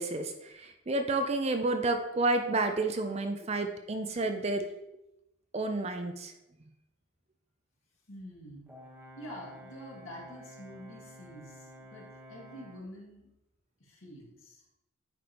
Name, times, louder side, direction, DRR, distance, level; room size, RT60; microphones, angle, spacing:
voice 1, 0.0-4.7 5.5-6.3, right 2 dB, 30° right, 6 dB, 0.4 m, -30 dB
voice 2, 8.1-8.7 9.2-13.3 13.8-14.6, equal, 60° left, -3 dB, 2.1 m, -47 dB
Brass instrument, 8.7-12.9, equal, 5° right, 1.1 m, -51 dB
9.1 x 5.2 x 2.9 m, 0.88 s
head